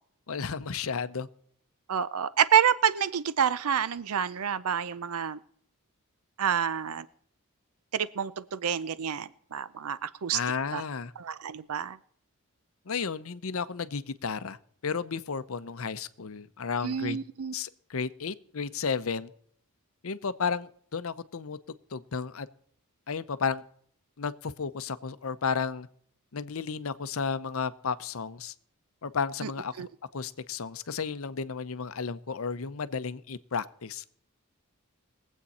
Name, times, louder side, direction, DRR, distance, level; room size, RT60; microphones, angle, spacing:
voice 1, 0.3-1.3 10.3-11.1 12.9-14.6 14.8-17.2 17.5-19.3 20.0-21.6 21.9-22.5 23.1-23.6 24.2-25.9 26.3-28.5 29.0-29.7 30.1-34.0, left 5 dB, 65° left, 14 dB, 0.7 m, -33 dB
voice 2, 1.9-5.4 6.4-7.1 7.9-10.4 10.7-10.8 11.2-12.0 16.8-17.5 29.4-29.5 29.8-29.9, right 8 dB, 80° right, 16 dB, 0.5 m, -28 dB
21.5 x 8.2 x 4.2 m, 0.64 s
head